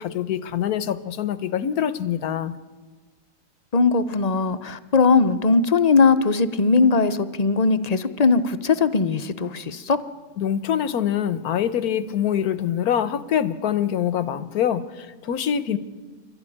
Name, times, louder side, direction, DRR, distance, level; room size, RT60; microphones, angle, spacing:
voice 1, 0.0-2.5 10.4-15.8, left 9 dB, 80° left, 14 dB, 1.4 m, -24 dB
voice 2, 3.7-10.0, left 4 dB, 40° left, 12 dB, 0.6 m, -19 dB
26.0 x 12.5 x 9.9 m, 1.4 s
omnidirectional pair, 1.6 m